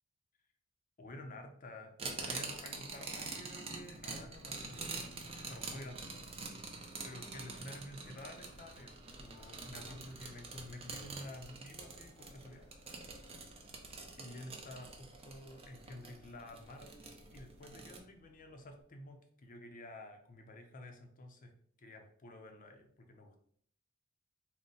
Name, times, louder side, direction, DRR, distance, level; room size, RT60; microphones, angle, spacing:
voice 1, 1.0-1.9 2.2-6.3 7.0-8.9 9.2-13.0 14.1-17.0 17.3-21.5 21.8-23.4, left 1 dB, 40° left, 4 dB, 0.6 m, -51 dB
sound 1, 2.0-18.0, right 3 dB, 25° right, 0.5 m, -46 dB
Run, 2.7-18.8, equal, 5° right, 1.2 m, -66 dB
4.0 x 2.1 x 3.7 m, 0.62 s
head